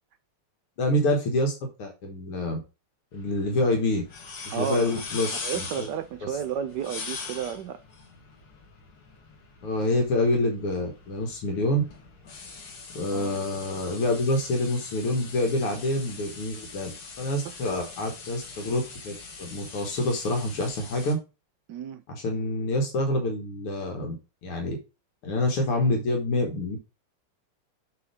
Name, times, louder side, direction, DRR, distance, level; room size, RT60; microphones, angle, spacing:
voice 1, 0.8-2.6 3.1-4.0 4.4-5.9 9.6-11.8 12.9-21.2 22.1-24.2 24.4-24.8 25.2-26.8, left 1 dB, 85° left, 2.4 m, -27 dB
sound 1, 3.1-21.1, left 4 dB, 50° left, 1.8 m, -42 dB
voice 2, 4.5-5.0 5.4-7.8 13.1-13.4 21.7-22.0, right 8 dB, 75° right, 0.9 m, -32 dB
7.7 x 3.9 x 4.9 m
omnidirectional pair, 2.4 m